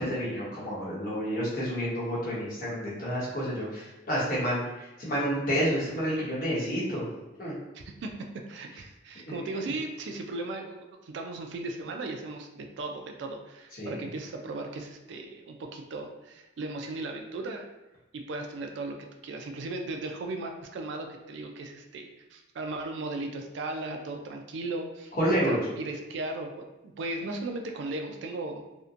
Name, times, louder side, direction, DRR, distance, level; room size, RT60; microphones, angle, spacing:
voice 1, 0.0-7.1 7.4-7.5 9.3-9.4 13.8-14.1 25.1-25.6, equal, 45° left, -7 dB, 0.9 m, -29 dB
voice 2, 7.7-17.7 18.1-19.0 19.2-25.1 25.4-28.6, right 2 dB, 65° right, 3 dB, 0.3 m, -37 dB
2.7 x 2.1 x 2.4 m, 1.0 s
head